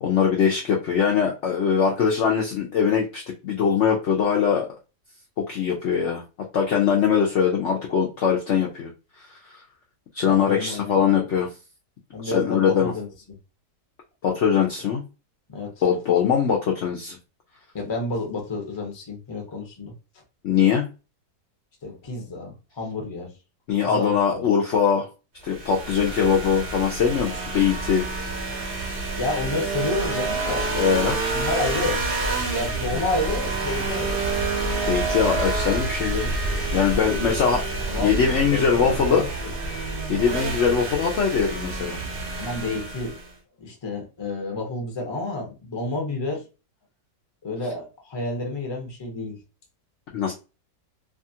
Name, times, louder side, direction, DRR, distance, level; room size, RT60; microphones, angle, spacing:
voice 1, 0.0-4.7 5.4-6.2 6.5-8.9 9.2-9.6 10.1-11.5 12.2-12.9 14.2-15.0 15.8-17.2 20.4-20.9 23.7-25.1 25.4-28.0 30.7-31.2 32.9-33.0 34.9-36.3 36.7-37.6 38.0-39.2 40.1-42.0 50.1-50.3, left 7 dB, 80° left, 0.6 m, -22 dB
voice 2, 10.2-11.1 12.1-13.1 15.5-15.7 17.7-19.9 21.8-23.3 23.8-24.5 29.2-30.7 31.3-32.0 32.5-34.2 36.9-37.5 37.9-38.2 38.5-39.5 42.1-43.2 43.6-46.4 47.4-49.4, left 2 dB, 30° left, 0.5 m, -30 dB
sound 1, 25.5-43.3, right 3 dB, 55° right, 0.6 m, -28 dB
2.8 x 2.4 x 2.7 m
omnidirectional pair, 1.9 m